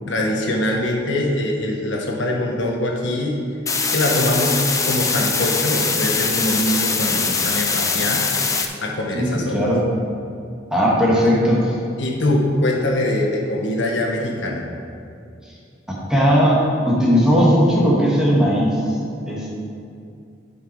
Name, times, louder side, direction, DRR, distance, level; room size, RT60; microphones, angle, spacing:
voice 1, 0.1-3.4 3.9-4.6 4.8-8.3 8.8-9.7 11.2-11.3 12.0-14.6, left 1 dB, 70° left, 0 dB, 1.2 m, -23 dB
sound 1, 3.7-8.7, left 4 dB, 15° left, 0.6 m, -22 dB
voice 2, 10.7-11.7 16.1-16.6 16.9-18.7 19.3-19.5, equal, 5° right, -6 dB, 1.9 m, -17 dB
11.0 x 5.7 x 4.6 m, 2.5 s
head